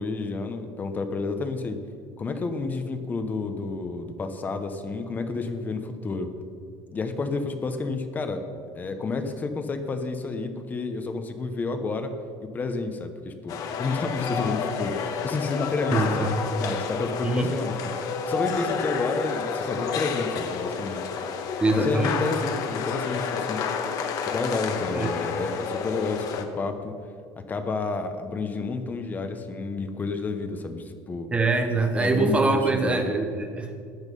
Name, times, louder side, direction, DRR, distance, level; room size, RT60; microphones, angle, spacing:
voice 1, 0.0-1.8 2.2-6.3 6.9-8.5 8.7-16.3 16.6-21.1 21.7-23.6 24.3-26.9 27.5-31.3 32.0-33.1, left 3 dB, 20° left, 7 dB, 0.9 m, -30 dB
sound 1, 13.5-26.4, left 6 dB, 45° left, 1.2 m, -30 dB
voice 2, 15.9-16.3 17.2-17.5 21.6-22.2 24.9-25.1 31.3-33.9, right 3 dB, 15° right, 6 dB, 0.8 m, -24 dB
14.5 x 10.5 x 5.4 m, 2.3 s
cardioid pair, 175°, 9 cm